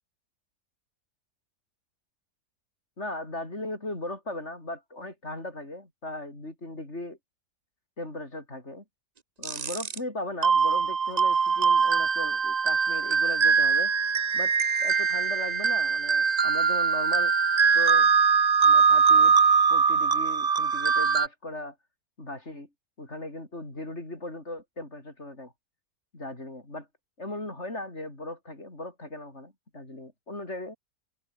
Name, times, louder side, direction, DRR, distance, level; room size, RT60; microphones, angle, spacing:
voice 1, 3.0-7.2 8.0-8.8 9.4-13.9 14.3-14.5 14.8-18.1 18.6-19.3 19.7-21.8 22.2-22.7 23.0-25.5 26.1-26.9 27.2-30.8, left 1 dB, 45° left, 6.3 m, -38 dB
sound 1, 9.4-10.0 10.4-21.3, right 5 dB, 35° right, 0.8 m, -22 dB
omnidirectional pair, 1.6 m